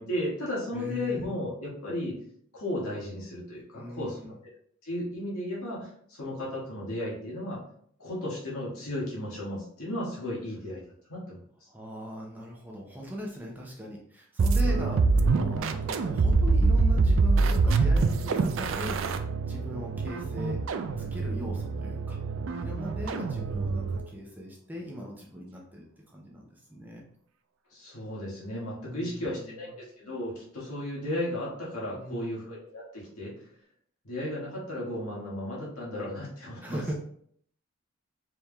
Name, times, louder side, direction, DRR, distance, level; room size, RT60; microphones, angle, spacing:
voice 1, 0.0-2.2 2.5-4.2 4.8-7.6 8.0-10.8 11.1-11.4 23.0-23.1 27.7-33.3 34.0-36.8, left 1 dB, 85° left, -5 dB, 1.7 m, -34 dB
voice 2, 0.7-1.3 3.7-4.4 11.7-15.1 15.3-20.6 20.9-22.2 22.6-27.0 28.8-29.7 31.9-32.4 36.6-36.9, equal, 10° right, -2 dB, 0.5 m, -40 dB
sound 1, 14.4-24.1, right 3 dB, 65° right, 0.3 m, -25 dB
4.5 x 3.5 x 2.3 m, 0.63 s
head